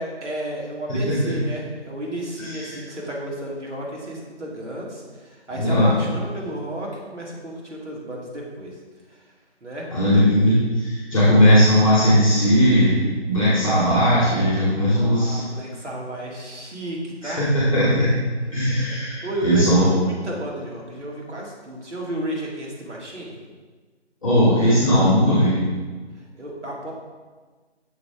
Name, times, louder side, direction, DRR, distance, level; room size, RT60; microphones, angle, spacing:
voice 1, 0.0-8.8 9.6-9.9 14.8-17.5 19.2-23.4 26.3-26.9, right 1 dB, 85° right, -3 dB, 2.0 m, -32 dB
voice 2, 0.9-1.3 2.4-2.8 5.5-5.9 9.9-13.0 13.2-15.4 17.2-18.1 18.5-19.8 24.2-25.5, equal, 30° left, -9 dB, 1.8 m, -18 dB
6.8 x 4.7 x 3.4 m, 1.4 s
figure-of-eight pair, 175°, 35 cm